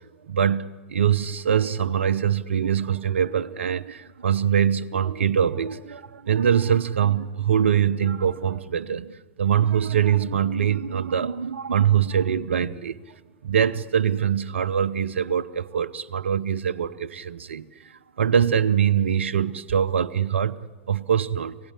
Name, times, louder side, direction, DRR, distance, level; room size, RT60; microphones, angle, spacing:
voice 1, 0.3-13.0 13.4-17.7 18.2-21.6, right 8 dB, 75° right, 0.7 m, -23 dB
25.5 x 17.5 x 10.0 m
figure-of-eight pair, 90°, 7 cm